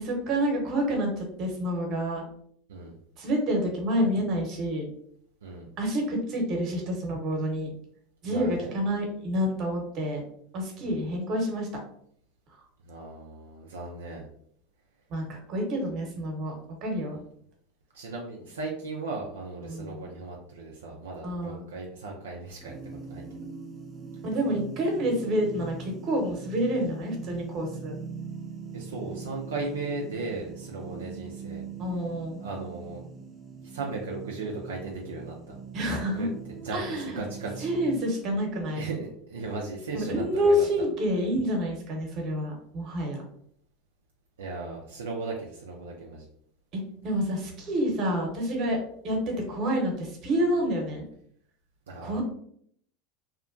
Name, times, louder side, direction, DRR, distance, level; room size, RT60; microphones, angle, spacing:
voice 1, 0.0-2.2 3.2-4.9 5.8-7.7 8.2-10.2 10.5-11.7 15.1-16.5 16.8-17.2 19.6-20.1 21.2-21.7 24.2-27.9 31.8-32.4 35.7-36.3 36.7-37.2 37.6-38.8 39.9-43.2 46.7-48.8 49.0-51.1 52.0-52.2, equal, 50° right, 1 dB, 1.0 m, -28 dB
voice 2, 8.2-8.8 10.8-11.0 12.8-14.3 17.9-23.2 28.7-31.6 32.4-33.0 33.6-35.6 36.1-37.7 38.7-40.6 44.4-46.3 51.9-52.2, right 3 dB, 85° right, -1 dB, 0.4 m, -37 dB
sound 1, 22.6-38.0, right 5 dB, 15° right, 0.6 m, -42 dB
2.8 x 2.2 x 2.5 m, 0.66 s
hypercardioid pair, 90°, 0 cm